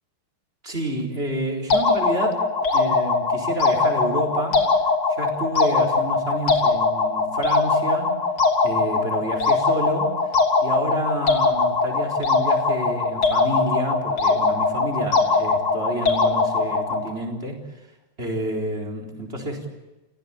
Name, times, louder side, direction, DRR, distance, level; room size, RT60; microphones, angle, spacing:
voice 1, 0.6-4.8 5.1-8.2 8.6-10.3 10.6-17.9 18.2-19.7, right 1 dB, 25° right, 0 dB, 4.4 m, -29 dB
sound 1, 1.7-17.1, left 4 dB, 70° left, 3.9 m, -21 dB
29.5 x 17.0 x 8.8 m, 1.0 s
omnidirectional pair, 2.4 m